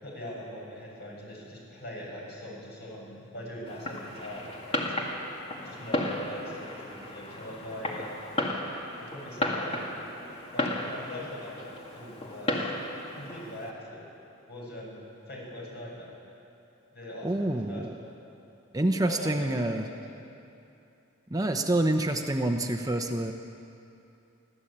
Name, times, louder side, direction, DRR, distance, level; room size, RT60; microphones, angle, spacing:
voice 1, 0.0-4.9 5.6-8.1 9.0-9.8 10.5-12.7 13.1-14.1 14.5-16.1 16.9-18.2 19.0-20.2, left 1 dB, 50° left, -3 dB, 7.2 m, -42 dB
Fireworks, 3.7-13.7, left 1 dB, 30° left, 2.3 m, -34 dB
voice 2, 17.2-17.9 18.7-19.9 21.3-23.3, right 1 dB, 15° right, 5 dB, 0.8 m, -27 dB
24.5 x 15.5 x 8.8 m, 2.7 s
head